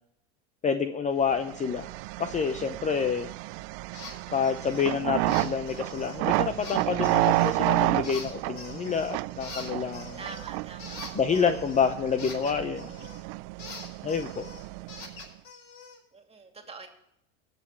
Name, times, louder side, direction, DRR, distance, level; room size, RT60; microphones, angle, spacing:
voice 1, 0.6-1.9 2.2-3.3 4.3-10.2 11.1-12.9 14.0-14.5, left 6 dB, 25° left, 9 dB, 0.7 m, -28 dB
sound 1, 1.4-15.3, right 22 dB, 60° right, 0.5 m, -31 dB
sound 2, 3.9-4.1 4.4-4.9 5.3-6.2 6.6-7.6 8.0-9.1 9.4-13.2 13.6-16.0, left 4 dB, 70° left, 5.6 m, -44 dB
voice 2, 10.2-11.2 16.1-16.9, right 3 dB, 20° right, 4 dB, 2.6 m, -45 dB
19.5 x 6.7 x 4.6 m, 0.80 s
hypercardioid pair, 95°, 32 cm